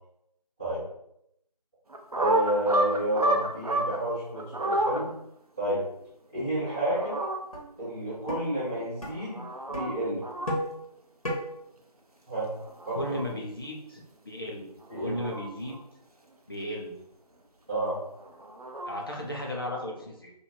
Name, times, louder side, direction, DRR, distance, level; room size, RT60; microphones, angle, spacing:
sound 1, 1.9-4.0 4.3-5.0 6.6-7.4 9.1-9.9 10.2-10.5 12.6-13.2 14.8-15.8 18.2-19.0, right 1 dB, 60° right, 0.7 m, -30 dB
voice 1, 2.1-5.2 5.6-5.8 6.3-7.2 7.8-10.3 12.3-12.5 12.8-13.0 14.9-15.2 17.7-18.0, right 1 dB, 10° right, -17 dB, 1.1 m, -30 dB
sound 2, 7.5-7.7 8.3-8.4 9.0-9.1 9.7-9.9 10.5-10.7 11.2-11.4, equal, 55° left, 1.3 m, -31 dB
voice 2, 12.9-14.7 15.0-15.8 16.5-16.9 18.9-20.3, equal, 35° left, -2 dB, 0.8 m, -35 dB
3.0 x 2.6 x 4.3 m, 0.77 s
figure-of-eight pair, 170°, 21 cm